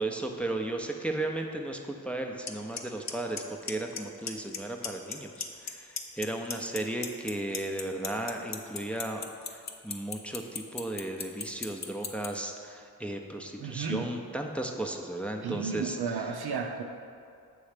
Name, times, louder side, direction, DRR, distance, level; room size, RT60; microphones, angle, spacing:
voice 1, 0.0-16.0 16.5-16.6, right 1 dB, 5° left, 2 dB, 0.5 m, -35 dB
Clock, 2.5-2.6 2.8-3.1 3.4-4.0 4.3-4.6 4.8-5.7 6.0-12.3, left 6 dB, 45° left, 0.6 m, -34 dB
voice 2, 13.6-14.1 15.4-16.8, right 5 dB, 75° right, 3 dB, 0.6 m, -33 dB
7.0 x 3.1 x 5.0 m, 2.4 s
cardioid pair, 45°, 38 cm